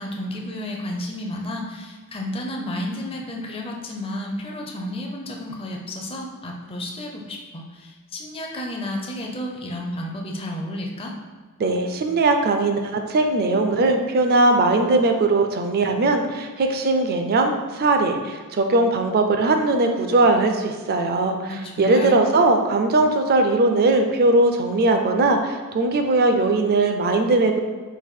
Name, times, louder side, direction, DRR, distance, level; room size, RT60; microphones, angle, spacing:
voice 1, 0.0-11.1 21.5-22.2, left 1 dB, 25° left, 0 dB, 0.5 m, -32 dB
voice 2, 11.6-21.5 21.8-27.6, right 2 dB, 45° right, 5 dB, 0.4 m, -19 dB
4.0 x 2.5 x 4.3 m, 1.5 s
head